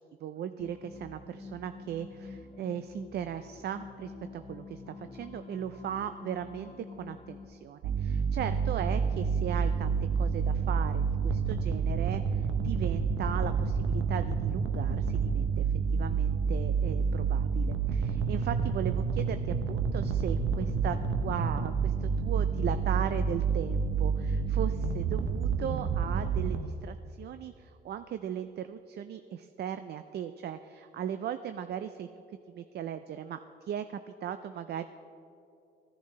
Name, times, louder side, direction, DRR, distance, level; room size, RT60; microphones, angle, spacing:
voice 1, 0.2-6.7 7.0-15.7 15.9-32.1 32.5-34.9, right 9 dB, 55° right, 10 dB, 0.4 m, -37 dB
sound 1, 0.6-7.4, left 4 dB, 25° left, 0.8 m, -47 dB
sound 2, 7.8-26.6, right 5 dB, 80° right, 0.8 m, -29 dB
15.5 x 10.0 x 3.2 m, 2.7 s
cardioid pair, 90°, 20 cm